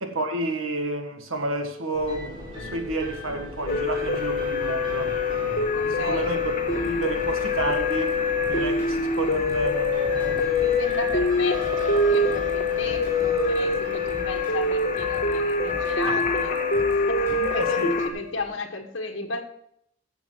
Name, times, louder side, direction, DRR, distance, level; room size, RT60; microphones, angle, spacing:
voice 1, 0.0-5.1 6.0-10.4 16.0-16.2 17.4-17.9, right 2 dB, 85° right, 1.7 m, -30 dB
sound 1, 1.9-18.4, left 1 dB, 25° right, 5.4 m, -38 dB
sound 2, 3.7-18.1, left 3 dB, 35° left, 1.4 m, -25 dB
voice 2, 5.7-6.3 10.6-19.5, left 2 dB, 60° left, 1.5 m, -34 dB
sound 3, 6.7-17.8, equal, 10° left, 5.0 m, -43 dB
15.0 x 6.9 x 4.7 m
head